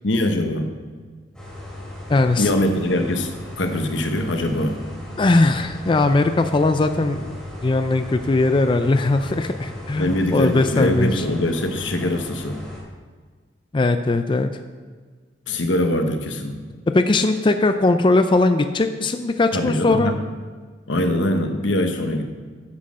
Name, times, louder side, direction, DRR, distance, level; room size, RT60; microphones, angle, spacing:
voice 1, 0.0-0.7 2.4-3.3 3.6-4.8 10.0-12.6 15.5-16.6 19.5-20.2 20.9-22.3, left 1 dB, 85° left, 5 dB, 1.1 m, -22 dB
sound 1, 1.3-12.8, left 1 dB, 5° left, 3.0 m, -36 dB
voice 2, 2.1-2.5 5.2-7.4 7.6-11.1 13.7-14.5 16.9-20.1, left 2 dB, 25° left, 8 dB, 0.4 m, -19 dB
9.6 x 6.3 x 6.3 m, 1.5 s
head